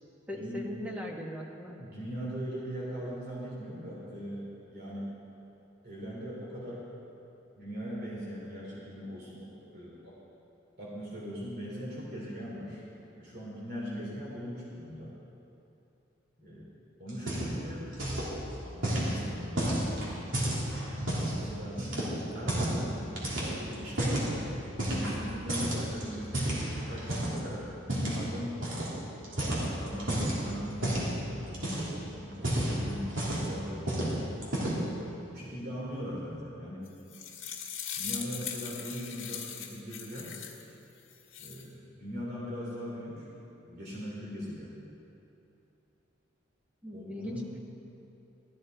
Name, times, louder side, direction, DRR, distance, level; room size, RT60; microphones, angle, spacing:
voice 1, 0.3-1.7 46.8-47.4, equal, 5° right, -1 dB, 1.3 m, -39 dB
voice 2, 1.8-4.5 4.7-5.1 5.8-6.8 7.6-10.2 10.8-12.8 13.1-15.1 16.4-16.7 17.0-18.0 18.6-20.5 21.3-21.8 22.3-24.5 24.8-27.7 28.1-28.6 29.4-34.1 35.3-36.9 38.0-40.4 41.4-43.3 43.6-44.8 46.9-47.4, equal, 55° right, -5 dB, 2.9 m, -40 dB
sound 1, 17.1-17.7 17.9-18.3 18.8-21.4 21.8-22.8 23.2-24.3 24.8-25.2 25.5-27.4 27.9-28.2 28.6-28.9 29.2-30.4 30.8-31.1 31.5-32.0 32.3-33.5 33.9-34.1 34.4-34.9, right 1 dB, 70° right, 3.2 m, -31 dB
sound 2, 36.9-40.6 41.1-41.6, left 8 dB, 85° left, 1.5 m, -40 dB
14.0 x 13.5 x 4.5 m, 2.9 s
head